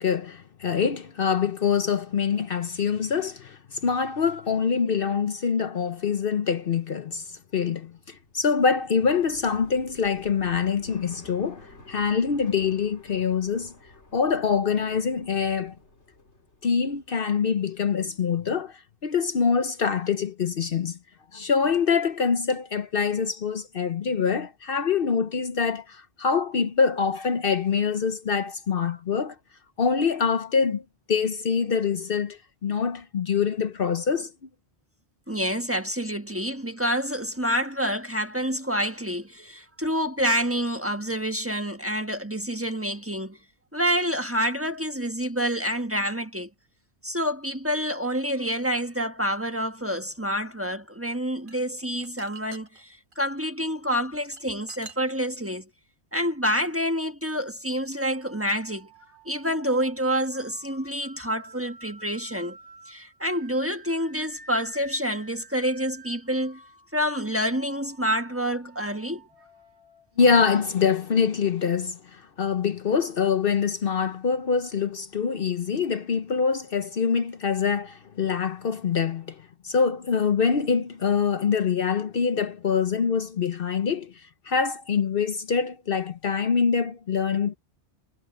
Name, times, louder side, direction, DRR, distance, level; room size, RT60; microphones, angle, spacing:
voice 1, 0.0-13.7 14.1-15.7 16.6-21.0 21.3-29.4 29.8-30.8 31.1-34.3 70.2-87.6, left 6 dB, 55° left, 1.0 m, -25 dB
sound 1, 7.8-17.6 17.9-18.7, left 2 dB, 85° left, 3.6 m, -51 dB
voice 2, 35.3-43.4 43.7-46.5 47.0-55.7 56.1-58.9 59.2-62.6 62.9-66.6 66.9-69.2, equal, 10° right, 1.3 m, -28 dB
sound 2, 51.1-53.3 54.0-55.5, right 4 dB, 50° right, 1.9 m, -46 dB
sound 3, 58.0-70.8, right 3 dB, 70° right, 3.8 m, -51 dB
omnidirectional pair, 1.1 m